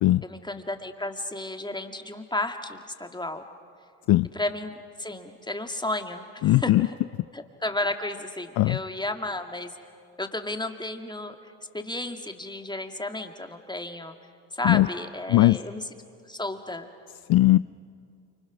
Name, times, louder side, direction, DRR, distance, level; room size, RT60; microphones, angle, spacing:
voice 1, 0.2-3.4 4.3-7.0 7.3-9.7 10.2-14.2 14.5-15.8 16.3-16.9, left 2 dB, 10° left, 5 dB, 2.3 m, -33 dB
voice 2, 6.4-6.9 8.6-8.8 14.6-14.9 15.3-15.6 17.3-17.6, left 17 dB, 50° left, 16 dB, 0.5 m, -19 dB
29.0 x 26.0 x 6.2 m, 2.3 s
hypercardioid pair, 50°, 48 cm